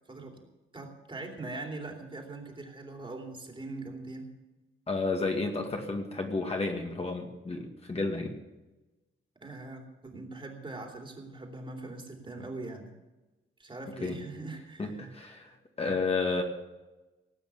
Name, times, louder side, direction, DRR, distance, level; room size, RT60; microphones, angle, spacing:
voice 1, 0.1-0.4 0.7-4.3 9.4-12.9 13.6-15.0, right 2 dB, 25° right, 1 dB, 2.9 m, -41 dB
voice 2, 4.9-8.3 14.0-14.2 14.8-16.4, left 3 dB, 30° left, 2 dB, 2.1 m, -31 dB
18.5 x 8.9 x 6.9 m, 1.1 s
wide cardioid pair, 150°, 21 cm